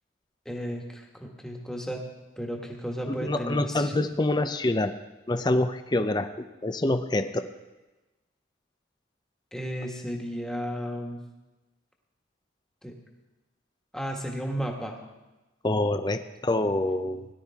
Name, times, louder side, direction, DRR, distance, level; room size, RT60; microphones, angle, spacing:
voice 1, 0.4-2.0 2.4-3.9 9.5-11.2 12.8-12.9 13.9-15.0, equal, 5° left, 0 dB, 1.5 m, -34 dB
voice 2, 3.1-5.0 5.3-6.3 6.6-7.5 15.6-17.3, left 2 dB, 20° left, 9 dB, 0.5 m, -26 dB
18.0 x 11.5 x 3.6 m, 1.1 s
head